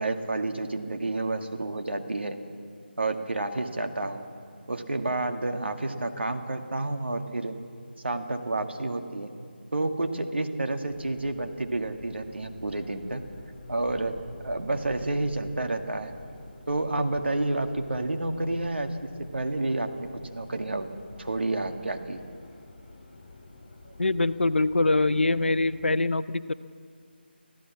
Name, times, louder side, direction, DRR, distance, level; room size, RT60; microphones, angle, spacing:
voice 1, 0.0-2.4 3.0-4.3 4.7-7.6 8.0-9.3 9.7-13.2 13.7-14.1 14.4-16.1 16.7-20.9 21.2-22.2, right 2 dB, 75° right, 5 dB, 2.0 m, -30 dB
Subway metro underground, 10.9-25.9, left 2 dB, 40° left, 5.8 m, -49 dB
voice 2, 24.0-26.5, left 2 dB, 75° left, 14 dB, 0.8 m, -24 dB
24.0 x 15.5 x 7.5 m, 2.2 s
figure-of-eight pair, 160°, 6 cm